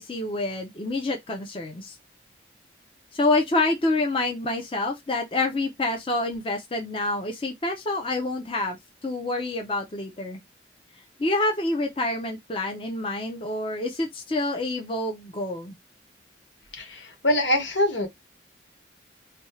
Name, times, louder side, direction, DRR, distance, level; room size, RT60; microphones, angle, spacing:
voice 1, 0.0-2.0 3.1-10.4 11.2-15.8, left 2 dB, 30° left, 0.6 m, -27 dB
voice 2, 16.8-18.1, left 1 dB, 85° left, 1.5 m, -24 dB
4.2 x 2.3 x 3.1 m
head